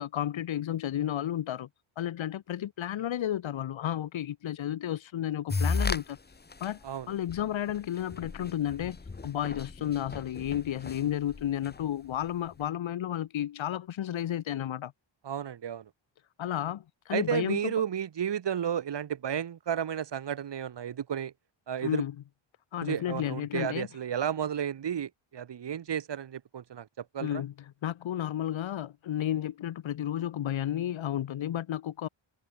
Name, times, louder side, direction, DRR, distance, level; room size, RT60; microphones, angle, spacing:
voice 1, 0.0-1.7 2.0-6.2 6.6-6.8 7.1-9.0 9.2-14.9 16.4-17.7 21.8-22.1 22.7-23.9 27.2-27.5 27.8-32.1, left 11 dB, 70° left, 2.1 m, -32 dB
sound 1, 5.5-6.0 6.5-6.7 7.3-7.4 7.7-7.8 8.1-11.8, left 4 dB, 20° left, 1.8 m, -33 dB
voice 2, 15.2-15.9 17.1-21.3 21.7-22.0 22.8-27.4, right 9 dB, 60° right, 3.6 m, -32 dB
cardioid pair, 125°, 48 cm